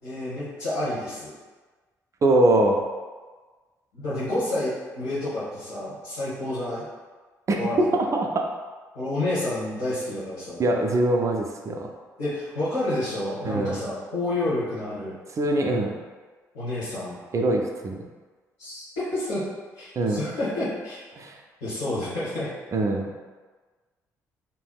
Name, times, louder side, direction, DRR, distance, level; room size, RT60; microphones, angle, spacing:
voice 1, 0.0-1.3 3.9-6.9 7.5-8.1 8.9-10.6 12.2-15.1 16.5-17.2 18.6-19.4 19.8-21.0 21.6-22.5, left 1 dB, 75° left, -14 dB, 1.1 m, -29 dB
voice 2, 2.2-2.8 7.5-7.6 7.9-8.4 10.6-11.9 13.5-13.8 15.4-15.9 17.3-18.0 20.0-20.2 21.2-21.3 22.7-23.1, right 2 dB, 35° right, 2 dB, 0.4 m, -22 dB
3.3 x 2.6 x 2.3 m, 1.4 s
figure-of-eight pair, 45°, 9 cm